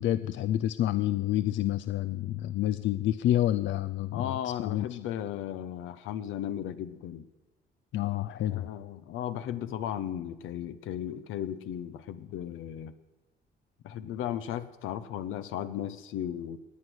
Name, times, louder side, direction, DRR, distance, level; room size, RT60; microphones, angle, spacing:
voice 1, 0.0-5.0 7.9-8.7, left 13 dB, 70° left, 14 dB, 0.5 m, -28 dB
voice 2, 4.1-7.3 8.5-12.9 13.8-16.6, left 10 dB, 90° left, 12 dB, 0.8 m, -35 dB
17.0 x 9.7 x 6.2 m, 1.1 s
cardioid pair, 90°, 20 cm